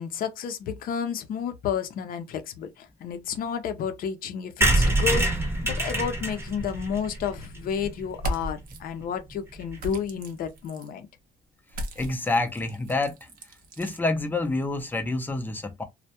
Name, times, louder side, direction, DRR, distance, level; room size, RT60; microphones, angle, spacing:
voice 1, 0.0-11.1, left 7 dB, 60° left, 0.6 m, -31 dB
sound 1, 4.6-8.3 8.7-8.8 9.0-9.1 9.3-9.4 9.6-9.9, right 1 dB, 15° right, 0.8 m, -26 dB
sound 2, 8.1-8.8 9.8-10.9 11.7-14.0, right 1 dB, 55° right, 0.7 m, -36 dB
voice 2, 12.0-13.1 13.8-15.8, left 2 dB, 10° left, 0.5 m, -27 dB
2.2 x 2.1 x 2.8 m
cardioid pair, 110°, 17 cm